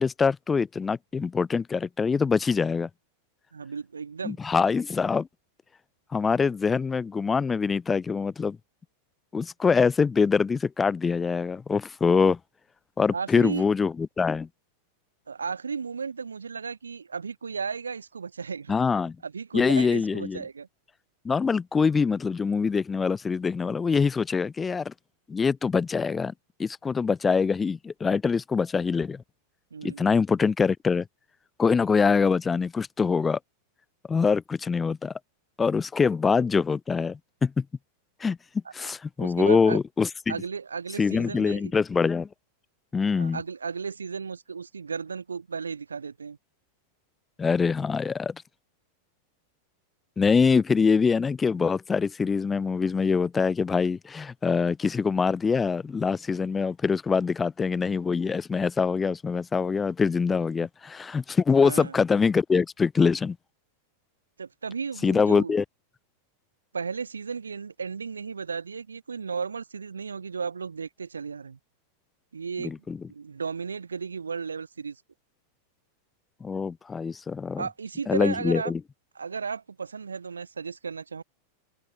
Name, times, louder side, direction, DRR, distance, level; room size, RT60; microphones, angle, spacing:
voice 1, 0.0-2.9 4.2-5.3 6.1-8.6 9.3-12.4 13.0-14.5 18.7-19.2 19.5-20.4 21.2-24.9 25.3-26.3 26.6-29.2 29.8-31.0 31.6-33.4 34.1-35.1 35.6-37.6 38.2-38.4 38.7-40.3 41.0-42.3 42.9-43.4 47.4-48.3 50.2-63.4 65.0-65.6 72.6-73.0 76.4-77.7 78.1-78.8, left 5 dB, 15° left, 3.2 m, -24 dB
voice 2, 3.5-4.4 13.1-13.7 15.3-18.8 19.2-20.7 29.7-30.1 39.2-39.8 40.3-41.7 43.1-46.4 61.6-61.9 64.4-65.5 66.7-71.6 72.3-72.8 73.1-75.0 77.6-78.7 79.1-81.2, right 5 dB, 75° right, 3.2 m, -34 dB
figure-of-eight pair, 90°, 0 cm